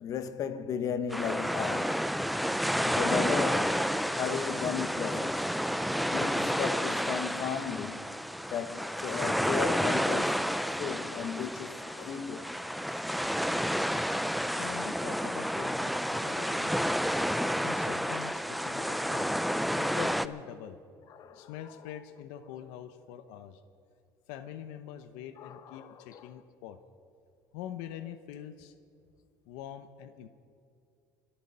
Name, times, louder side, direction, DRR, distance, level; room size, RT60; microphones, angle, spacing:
voice 1, 0.0-2.0 2.8-3.9 4.2-5.5 5.9-8.2 8.5-10.4 10.8-12.5 21.1-21.7 25.4-26.3, left 7 dB, 50° left, 1.0 m, -35 dB
sound 1, 1.1-20.3, equal, ahead, 0.5 m, -30 dB
voice 2, 14.6-17.0 17.6-19.3 19.8-20.8 21.3-23.6 24.3-26.8 27.5-28.7 29.5-30.3, left 10 dB, 85° left, 0.8 m, -44 dB
25.5 x 9.1 x 5.5 m
cardioid pair, 120°, 8 cm